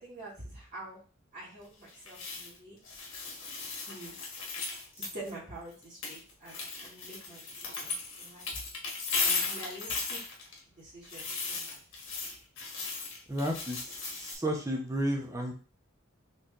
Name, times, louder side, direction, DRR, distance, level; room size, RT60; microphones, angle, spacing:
voice 1, 0.0-1.0 1.3-2.8 3.8-4.1 4.9-8.7 9.2-10.2 10.8-11.8, right 1 dB, 45° right, -9 dB, 2.0 m, -46 dB
sound 1, 1.9-2.6 2.8-5.3 5.7-10.6 11.0-14.4, left 4 dB, 90° left, 1.3 m, -36 dB
voice 2, 13.3-15.5, equal, 15° right, 0 dB, 0.9 m, -32 dB
4.4 x 3.5 x 2.5 m, 0.38 s
head